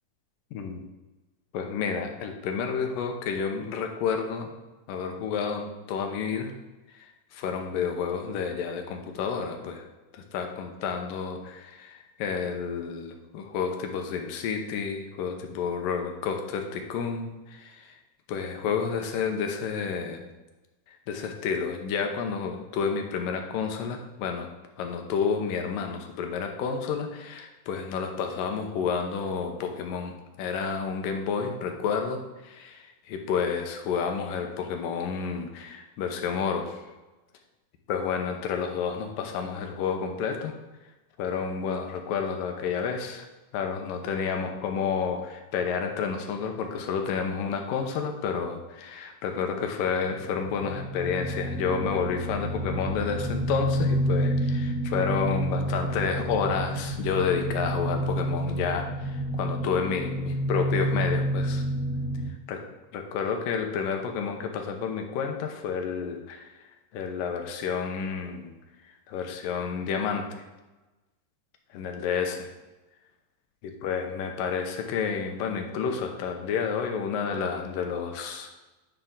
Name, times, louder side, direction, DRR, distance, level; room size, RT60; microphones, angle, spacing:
voice 1, 0.5-0.8 1.5-4.5 4.9-6.5 7.0-9.8 10.1-17.9 18.3-20.3 21.1-24.5 24.8-36.8 37.9-40.6 41.2-43.3 43.5-61.6 62.5-62.6 62.9-66.5 66.9-68.5 69.1-70.4 71.7-72.5 73.8-78.6, left 6 dB, 75° left, 4 dB, 2.5 m, -30 dB
sound 1, 50.2-62.3, right 1 dB, 25° left, 3.6 m, -29 dB
9.4 x 7.8 x 3.8 m, 1.1 s
omnidirectional pair, 4.2 m